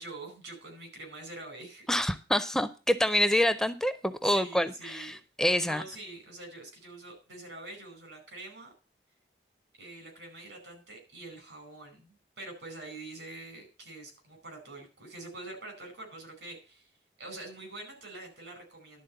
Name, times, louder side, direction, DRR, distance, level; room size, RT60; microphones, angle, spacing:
voice 1, 0.0-1.9 4.2-5.2 5.6-8.7 9.8-16.9 17.2-19.0, right 2 dB, 90° right, 3 dB, 5.0 m, -45 dB
voice 2, 1.9-5.8, left 1 dB, 5° left, 11 dB, 0.5 m, -27 dB
11.5 x 4.3 x 7.7 m, 0.33 s
head